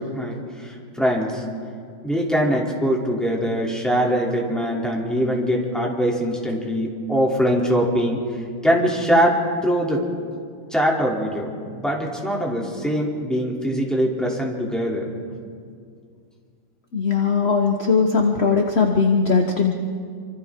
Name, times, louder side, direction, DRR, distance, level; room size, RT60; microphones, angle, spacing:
voice 1, 0.0-1.4 2.0-8.2 8.6-10.0 10.7-15.1, equal, ahead, -2 dB, 2.8 m, -22 dB
voice 2, 16.9-19.8, left 5 dB, 45° left, 2 dB, 0.9 m, -19 dB
27.5 x 25.5 x 3.7 m, 2.2 s
omnidirectional pair, 2.4 m